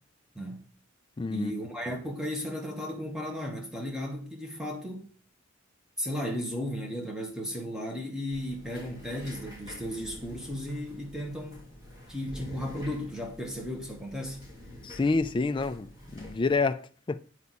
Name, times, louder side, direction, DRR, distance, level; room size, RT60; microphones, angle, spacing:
voice 1, 0.3-0.7 1.3-5.1 6.0-11.6 12.1-14.4, equal, 5° right, 1.5 m, -35 dB
voice 2, 1.2-1.5 14.8-17.2, left 3 dB, 25° left, 0.4 m, -28 dB
sound 1, 8.3-16.5, left 1 dB, 20° right, 2.8 m, -47 dB
8.3 x 4.7 x 4.1 m
head